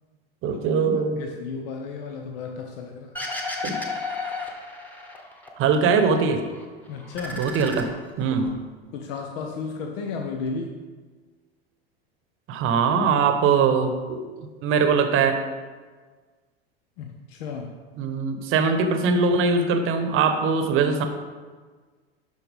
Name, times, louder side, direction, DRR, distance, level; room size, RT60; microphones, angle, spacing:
voice 1, 0.4-1.2 3.6-3.8 5.6-6.4 7.4-7.9 8.2-8.5 12.5-15.4 18.0-21.0, right 5 dB, 40° right, 7 dB, 1.0 m, -22 dB
voice 2, 1.1-3.2 6.9-7.4 8.3-8.4 8.9-10.8 17.0-17.7, left 5 dB, 60° left, 3 dB, 0.8 m, -33 dB
sound 1, 3.2-5.5 5.8-6.7 7.0-8.5, left 3 dB, 5° left, 1.2 m, -33 dB
12.0 x 4.4 x 3.5 m, 1.4 s
hypercardioid pair, 80°, 31 cm